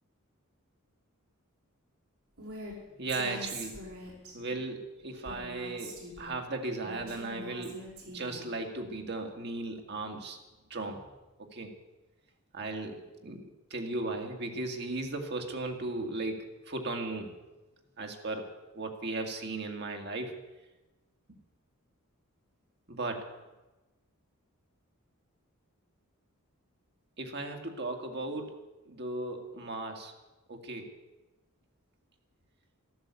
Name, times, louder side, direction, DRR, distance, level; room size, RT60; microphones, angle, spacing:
Female speech woman speaking, 2.4-2.7 3.1-4.3 5.2-6.4 6.8-8.5, equal, 80° right, 5.4 m, -43 dB
voice 1, 3.0-3.8 4.3-7.8 8.0-10.4 10.7-11.0 11.4-11.7 12.5-17.4 18.0-20.4 22.9-23.3 27.2-28.6 28.9-30.1 30.5-30.9, right 2 dB, 50° right, 4 dB, 2.2 m, -36 dB
13.5 x 13.0 x 8.3 m, 1.1 s
head